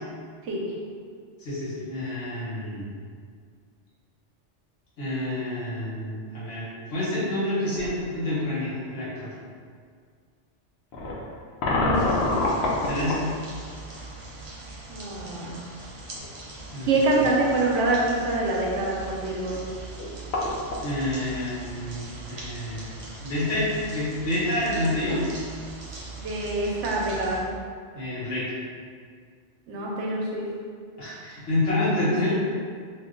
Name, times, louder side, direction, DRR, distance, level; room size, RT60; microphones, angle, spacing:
voice 1, 1.4-2.8 5.0-9.3 12.8-13.3 16.7-17.0 20.8-22.9 23.2-25.2 27.9-28.5 31.0-32.3, left 1 dB, 85° left, -10 dB, 1.5 m, -28 dB
sound 1, 7.7-7.9 8.8-8.9 10.9-13.3 15.8-15.9 16.2-16.3 19.7-19.8 20.0-20.9, left 2 dB, 70° left, 0.8 m, -26 dB
voice 2, 11.8-12.2 14.9-15.6 16.8-19.6 26.1-27.4 29.7-30.5, right 2 dB, 90° right, -3 dB, 1.0 m, -25 dB
sound 2, 11.9-27.4, right 3 dB, 45° right, 0.4 m, -41 dB
2.9 x 2.2 x 3.7 m, 2.1 s
omnidirectional pair, 1.2 m